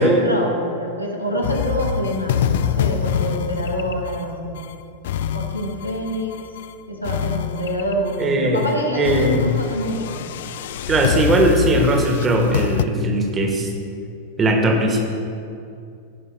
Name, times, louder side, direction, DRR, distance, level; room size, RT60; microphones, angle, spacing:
voice 1, 0.0-4.6 5.3-6.4 6.9-10.2, equal, 85° left, 0 dB, 1.3 m, -26 dB
sound 1, 1.4-6.7 7.0-8.2 8.6-8.7 9.0-12.9, left 8 dB, 55° left, 0.3 m, -25 dB
voice 2, 8.2-8.7 8.9-9.6 10.9-13.7 14.4-15.0, right 1 dB, 20° right, 2 dB, 1.3 m, -19 dB
15.5 x 5.4 x 3.2 m, 2.5 s
figure-of-eight pair, 90°, 0 cm